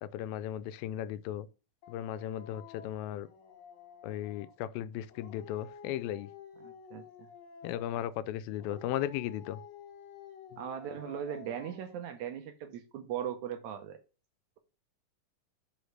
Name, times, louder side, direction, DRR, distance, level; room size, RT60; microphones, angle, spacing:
voice 1, 0.0-1.5 1.9-3.3 4.0-6.3 7.6-9.6 10.5-10.6, left 12 dB, 85° left, 2.4 m, -36 dB
Dog, 1.8-4.6 5.1-8.2 8.6-12.1, left 7 dB, 60° left, 2.5 m, -51 dB
voice 2, 6.6-7.3 10.6-14.0, right 9 dB, 70° right, 1.8 m, -39 dB
5.5 x 5.2 x 6.3 m
omnidirectional pair, 4.2 m